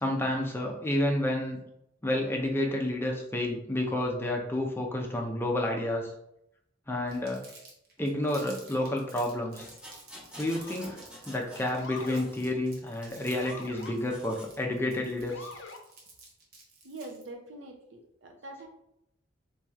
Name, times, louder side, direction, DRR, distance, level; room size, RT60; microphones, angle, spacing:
voice 1, 0.0-1.6 2.0-6.1 6.9-7.4 8.0-9.7 10.4-11.0 11.3-15.5, left 1 dB, 10° left, 1 dB, 0.5 m, -30 dB
Crumpling crinkling, 7.1-17.3, right 3 dB, 50° right, 1.0 m, -52 dB
Motor vehicle (road) / Siren, 8.7-9.1 10.5-11.0 11.8-12.3 13.4-14.0 15.3-15.8, left 3 dB, 75° left, 0.6 m, -44 dB
sound 1, 9.6-11.7 12.0-13.6 13.9-14.6 15.2-15.3, equal, 5° right, 1.0 m, -49 dB
voice 2, 16.8-18.7, right 2 dB, 70° right, 3 dB, 0.6 m, -44 dB
3.1 x 3.0 x 3.5 m, 0.78 s
head